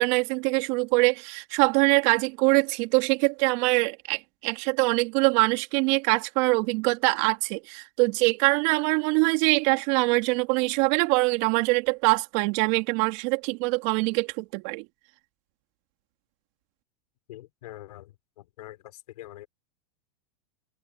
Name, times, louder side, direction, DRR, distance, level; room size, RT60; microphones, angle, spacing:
voice 1, 0.0-14.8, right 28 dB, 55° right, 2.8 m, -23 dB
voice 2, 17.3-18.1 18.6-18.8 19.2-19.5, left 15 dB, 75° left, 4.0 m, -43 dB
hypercardioid pair, 115°, 20 cm